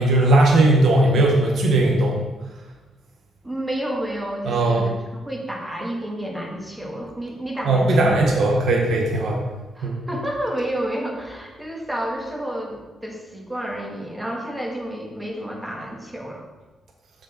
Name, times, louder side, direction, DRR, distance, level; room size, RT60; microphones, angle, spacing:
voice 1, 0.0-2.1 4.4-4.8 7.6-9.4 9.8-10.0, right 2 dB, 70° right, 0 dB, 1.5 m, -18 dB
voice 2, 3.4-8.3 9.8-16.4, right 1 dB, 10° right, -1 dB, 1.8 m, -30 dB
6.8 x 6.5 x 4.4 m, 1.2 s
cardioid pair, 95°, 0 cm